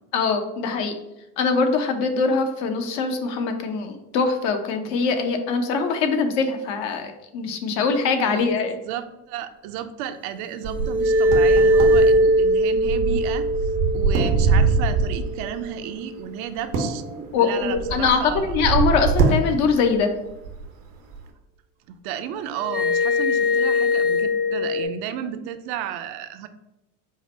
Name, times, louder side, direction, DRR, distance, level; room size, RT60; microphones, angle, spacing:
voice 1, 0.1-1.0 1.4-8.8 17.3-20.1, left 5 dB, 65° left, 6 dB, 0.8 m, -22 dB
voice 2, 8.9-18.5 21.9-26.5, right 9 dB, 60° right, 9 dB, 0.5 m, -33 dB
sound 1, 10.6-15.9 22.6-24.8, equal, 5° right, 0.3 m, -21 dB
sound 2, 10.6-15.4 16.6-20.0 20.3-20.6 21.1-21.2, right 4 dB, 85° right, 0.9 m, -24 dB
4.8 x 2.1 x 4.2 m, 0.95 s
hypercardioid pair, 85°, 45 cm